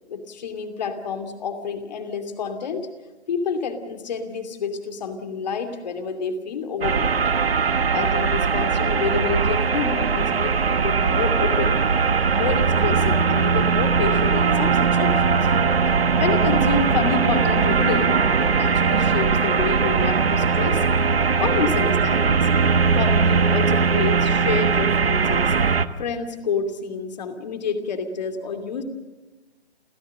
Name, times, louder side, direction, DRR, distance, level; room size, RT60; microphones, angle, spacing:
voice 1, 0.1-2.9 3.3-7.2 7.9-11.8 12.4-15.4 16.2-20.8 21.4-22.5 22.9-25.5 26.0-28.8, left 5 dB, 40° left, 7 dB, 2.7 m, -28 dB
sound 1, 6.8-25.9, right 5 dB, 65° right, 1.3 m, -20 dB
29.5 x 15.5 x 6.6 m, 1.2 s
figure-of-eight pair, 140°, 33 cm